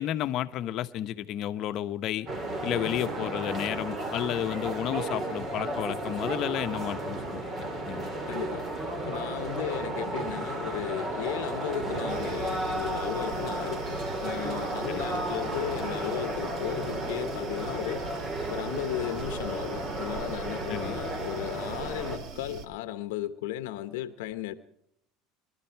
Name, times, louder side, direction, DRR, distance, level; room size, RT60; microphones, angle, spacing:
voice 1, 0.0-2.3 2.6-8.1 14.9-15.2 20.7-21.0, left 12 dB, 50° left, 0.9 m, -32 dB
sound 1, 2.3-22.2, right 1 dB, 35° right, 3.1 m, -33 dB
voice 2, 8.3-8.7 9.0-18.1 18.5-24.5, left 13 dB, 85° left, 0.9 m, -35 dB
sound 2, 12.1-22.7, right 5 dB, 55° right, 1.7 m, -43 dB
24.0 x 12.5 x 4.6 m
supercardioid pair, 120°, 0 cm